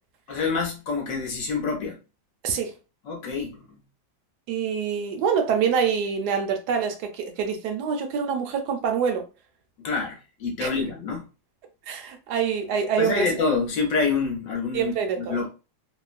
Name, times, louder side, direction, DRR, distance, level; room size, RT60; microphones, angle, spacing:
voice 1, 0.3-2.0 3.1-3.6 9.8-11.2 13.0-15.5, left 4 dB, 60° left, 0.9 m, -27 dB
voice 2, 2.4-2.8 4.5-9.2 10.6-10.7 11.9-13.3 14.7-15.4, right 7 dB, 70° right, 1.0 m, -25 dB
3.0 x 2.0 x 2.4 m
omnidirectional pair, 2.0 m